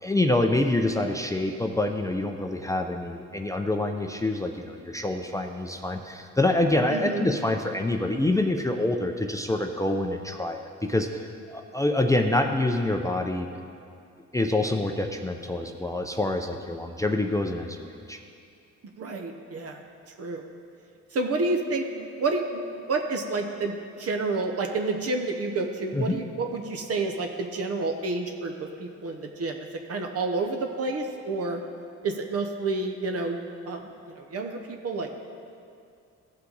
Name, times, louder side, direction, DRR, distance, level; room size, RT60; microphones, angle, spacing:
voice 1, 0.0-13.5 14.3-18.2 25.9-26.2, left 2 dB, 10° left, 4 dB, 0.5 m, -26 dB
voice 2, 6.9-7.3 18.8-19.8 20.2-20.5 21.1-31.6 32.0-35.1, right 3 dB, 50° right, 4 dB, 0.9 m, -29 dB
15.0 x 5.6 x 3.9 m, 2.4 s
cardioid pair, 90°, 30 cm